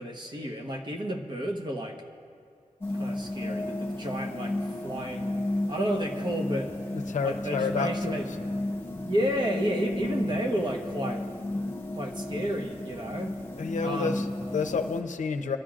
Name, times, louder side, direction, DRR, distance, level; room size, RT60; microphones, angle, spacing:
voice 1, 0.0-2.0 2.9-5.3 5.7-6.7 7.2-8.3 9.0-11.3 11.9-13.4 13.8-14.3, equal, 35° right, 2 dB, 1.1 m, -31 dB
sound 1, 2.8-15.0, left 1 dB, 20° left, 1.3 m, -33 dB
voice 2, 6.9-8.4 13.6-15.6, left 5 dB, 75° left, 7 dB, 0.7 m, -30 dB
25.0 x 12.0 x 2.5 m, 2.4 s
wide cardioid pair, 170°, 13 cm